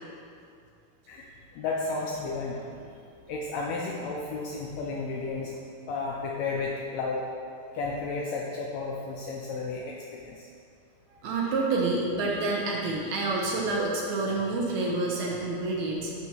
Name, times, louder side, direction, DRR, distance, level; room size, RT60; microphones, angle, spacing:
voice 1, 1.1-2.6 3.3-5.5 5.9-7.3 7.7-10.5, left 3 dB, 80° left, -2 dB, 1.6 m, -33 dB
voice 2, 11.2-16.1, right 3 dB, 75° right, -2 dB, 1.9 m, -28 dB
10.5 x 4.4 x 2.9 m, 2.4 s
omnidirectional pair, 3.6 m